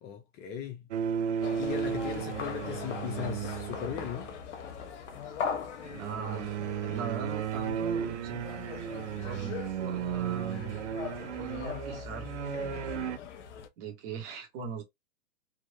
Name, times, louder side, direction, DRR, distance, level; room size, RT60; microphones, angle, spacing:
voice 1, 0.0-0.9 1.6-4.3, left 9 dB, 25° left, 0.7 m, -38 dB
sound 1, 0.9-4.5 5.8-13.2, right 8 dB, 60° right, 0.8 m, -34 dB
sound 2, 1.4-13.7, left 6 dB, 65° left, 0.9 m, -41 dB
voice 2, 5.9-8.4 9.2-10.8 11.3-12.3 13.8-14.8, right 5 dB, 45° right, 1.7 m, -40 dB
3.7 x 2.9 x 2.7 m
hypercardioid pair, 120°, 39 cm